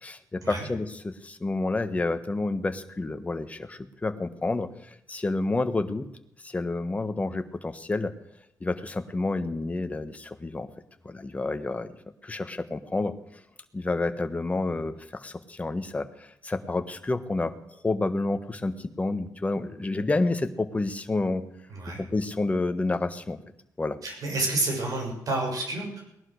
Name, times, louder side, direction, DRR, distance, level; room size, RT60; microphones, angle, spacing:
voice 1, 0.0-4.7 5.1-6.1 6.4-8.1 8.6-10.7 11.0-11.9 12.2-13.1 13.7-17.5 17.8-21.5 22.0-23.4 23.8-24.0, left 2 dB, 20° left, 9 dB, 1.3 m, -29 dB
voice 2, 21.7-22.0 24.0-26.0, right 2 dB, 65° right, 0 dB, 6.7 m, -29 dB
19.0 x 11.5 x 6.5 m, 0.81 s
cardioid pair, 115°, 7 cm